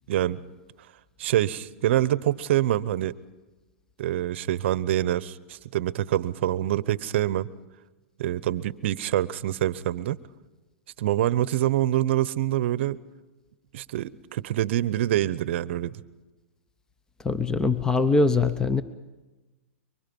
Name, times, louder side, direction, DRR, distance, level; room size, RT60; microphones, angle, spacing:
voice 1, 0.1-0.4 1.2-3.1 4.0-7.5 8.2-10.2 11.0-13.0 13.7-16.0, right 13 dB, 60° right, 18 dB, 0.8 m, -25 dB
voice 2, 17.2-18.8, left 3 dB, 10° left, 13 dB, 0.7 m, -22 dB
25.5 x 24.0 x 5.4 m, 1.2 s
hypercardioid pair, 130°, 7 cm